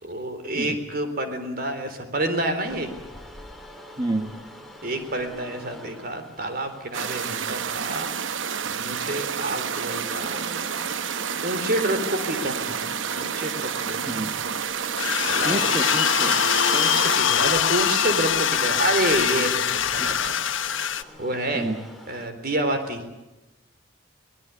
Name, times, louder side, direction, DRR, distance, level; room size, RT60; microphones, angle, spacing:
voice 1, 0.0-2.9 4.8-8.1 8.8-10.4 11.4-12.8 13.1-14.1 15.3-15.6 16.7-20.3 21.2-21.7 22.1-23.0, right 1 dB, 50° right, 7 dB, 3.7 m, -28 dB
sound 1, 2.6-22.3, left 1 dB, ahead, 2.7 m, -46 dB
voice 2, 4.0-4.3 14.1-14.3 15.4-16.4 20.0-20.1 21.5-21.8, right 1 dB, 20° right, 4 dB, 1.6 m, -28 dB
sound 2, 6.9-17.2, right 7 dB, 75° right, 0.9 m, -29 dB
sound 3, 15.0-21.0, left 8 dB, 75° left, 1.2 m, -23 dB
24.0 x 19.5 x 8.4 m, 1.0 s
head